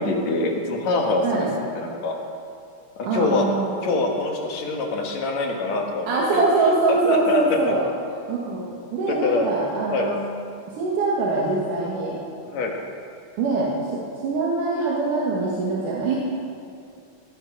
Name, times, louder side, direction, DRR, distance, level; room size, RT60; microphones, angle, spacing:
voice 1, 0.0-2.1 3.0-3.5 3.8-6.4 6.9-7.4 9.1-9.5 9.9-10.1 12.4-12.8, left 3 dB, 65° left, 1 dB, 2.7 m, -25 dB
voice 2, 3.0-3.9 6.1-7.8 8.3-10.2 10.7-12.2 13.4-13.7 14.2-16.2, right 3 dB, 85° right, -4 dB, 3.3 m, -23 dB
19.0 x 12.0 x 5.0 m, 2.4 s
omnidirectional pair, 3.6 m